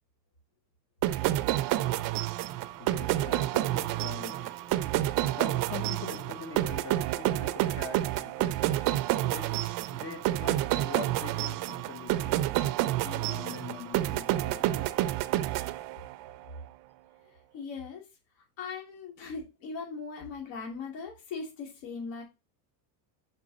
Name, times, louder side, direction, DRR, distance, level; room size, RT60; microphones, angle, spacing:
sound 1, 1.0-16.3, right 15 dB, 45° right, 0.5 m, -29 dB
voice 1, 1.2-15.3, left 5 dB, 30° left, 0.7 m, -44 dB
voice 2, 17.5-18.0 18.6-22.2, left 4 dB, 65° left, 2.6 m, -39 dB
6.0 x 4.6 x 4.0 m
supercardioid pair, 135°, 49 cm